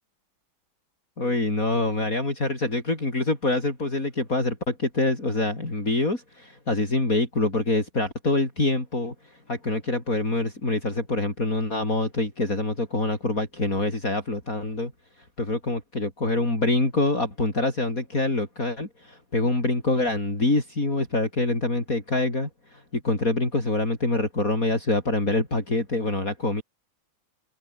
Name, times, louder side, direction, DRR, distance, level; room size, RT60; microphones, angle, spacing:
voice 1, 1.2-9.1 9.5-14.9 15.4-26.6, left 2 dB, 40° left, 6.1 m, -25 dB
open air
omnidirectional pair, 2.2 m